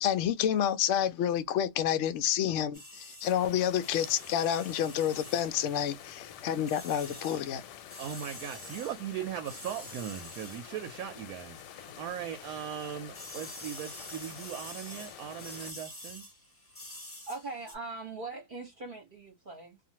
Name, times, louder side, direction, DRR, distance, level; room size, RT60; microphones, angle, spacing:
voice 1, 0.0-7.6, left 10 dB, 70° left, 0.7 m, -29 dB
sound 1, 2.7-11.8 12.1-17.8, left 1 dB, 15° left, 0.4 m, -48 dB
sound 2, 3.2-15.7, left 10 dB, 90° left, 1.2 m, -48 dB
voice 2, 8.0-16.2, right 9 dB, 70° right, 1.0 m, -39 dB
voice 3, 17.0-19.8, right 3 dB, 40° right, 0.8 m, -41 dB
2.5 x 2.5 x 2.7 m
omnidirectional pair, 1.8 m